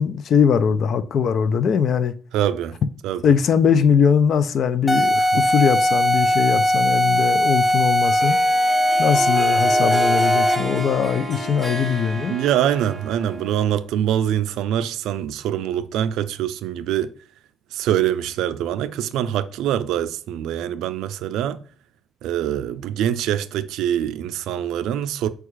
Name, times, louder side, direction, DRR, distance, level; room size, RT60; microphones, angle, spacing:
voice 1, 0.0-2.2 3.2-8.4 9.0-12.4, left 7 dB, 65° left, 0.4 m, -20 dB
voice 2, 2.3-2.8 3.0-3.3 5.1-5.4 12.3-17.1 17.7-21.6 22.2-25.3, right 10 dB, 90° right, 0.3 m, -24 dB
sound 1, 4.9-10.8, equal, 10° left, 0.6 m, -19 dB
Harp, 8.0-13.8, right 2 dB, 15° right, 1.0 m, -29 dB
4.7 x 2.3 x 4.5 m
cardioid pair, 90°, 0 cm